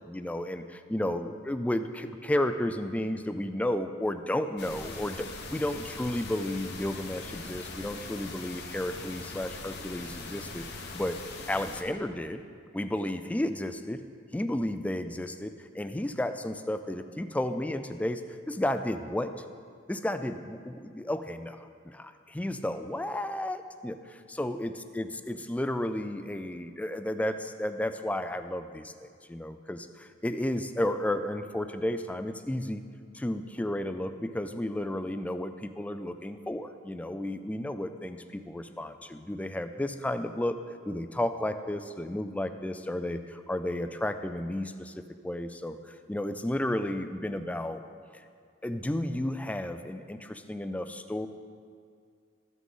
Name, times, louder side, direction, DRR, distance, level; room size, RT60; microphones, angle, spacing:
voice 1, 0.1-0.6 0.9-11.2 11.5-12.5 12.7-14.0 14.3-18.2 18.5-19.3 19.9-32.8 33.1-47.8 48.1-48.2 48.6-51.3, left 1 dB, 10° left, 9 dB, 0.3 m, -32 dB
sound 1, 4.6-11.8, left 3 dB, 60° left, 0.9 m, -41 dB
13.0 x 6.1 x 3.7 m, 2.2 s
head